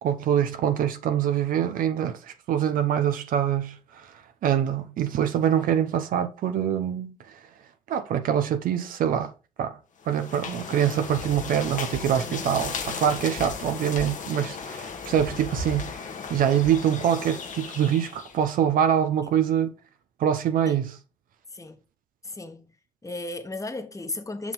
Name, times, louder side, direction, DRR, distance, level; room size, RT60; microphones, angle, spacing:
voice 1, 0.0-4.1 4.4-7.4 7.9-9.3 9.6-9.8 10.1-15.9 16.3-19.7 20.2-21.0, right 9 dB, 85° right, 0.7 m, -24 dB
sound 1, 10.0-18.4, left 5 dB, 65° left, 1.1 m, -35 dB
voice 2, 22.2-22.7 23.0-24.5, left 2 dB, 25° left, 1.1 m, -35 dB
5.8 x 4.7 x 3.9 m
supercardioid pair, 55°, 14 cm